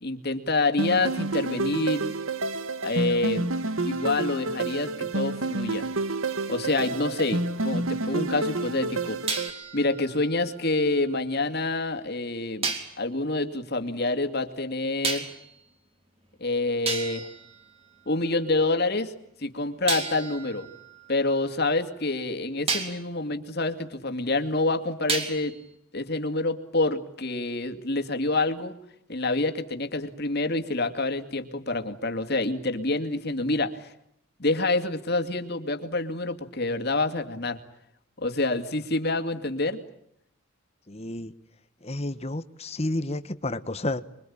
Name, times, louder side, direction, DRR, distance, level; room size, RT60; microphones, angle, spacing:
voice 1, 0.0-2.1 2.8-3.5 3.8-5.9 6.5-9.2 9.7-12.7 13.0-15.3 16.4-17.3 18.1-19.1 19.4-20.7 21.1-25.6 25.9-28.8 29.1-33.9 34.4-37.6 38.2-39.8, left 2 dB, 50° left, 7 dB, 2.5 m, -27 dB
sound 1, 0.8-9.5, right 2 dB, 75° right, 1.4 m, -29 dB
sound 2, 6.7-8.1 9.3-11.4 12.6-13.0 15.0-15.6 16.4-16.5 16.9-18.5 19.9-22.0 22.7-23.1 25.1-25.7, right 4 dB, 30° right, 3.4 m, -34 dB
voice 2, 40.9-41.3 41.8-44.0, left 1 dB, 30° left, 12 dB, 1.2 m, -31 dB
26.0 x 23.5 x 8.7 m, 0.73 s
head